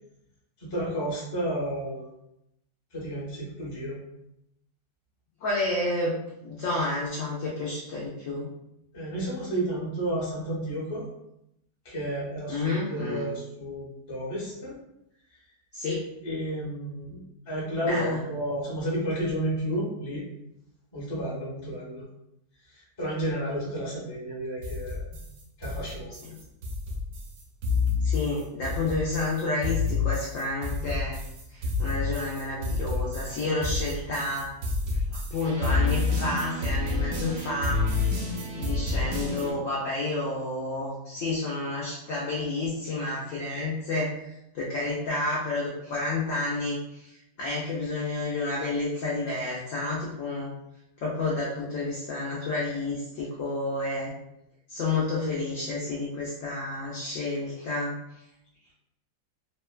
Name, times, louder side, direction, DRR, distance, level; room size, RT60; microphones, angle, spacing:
voice 1, 0.6-2.1 2.9-4.0 8.9-11.1 11.8-14.7 16.2-20.2 20.9-22.0 23.0-25.0 25.6-26.2, right 1 dB, 30° left, -6 dB, 0.5 m, -31 dB
voice 2, 5.4-8.5 12.5-13.3 15.7-16.1 17.8-18.2 26.3-26.4 28.0-31.2 31.5-34.5 34.9-35.0 35.3-37.8 38.5-47.1 47.4-50.5 51.0-54.1 54.7-58.0, left 2 dB, 70° left, -5 dB, 0.7 m, -30 dB
sound 1, 24.6-39.5, left 3 dB, 65° right, 0.9 m, -29 dB
3.0 x 2.1 x 2.3 m, 0.83 s
omnidirectional pair, 1.9 m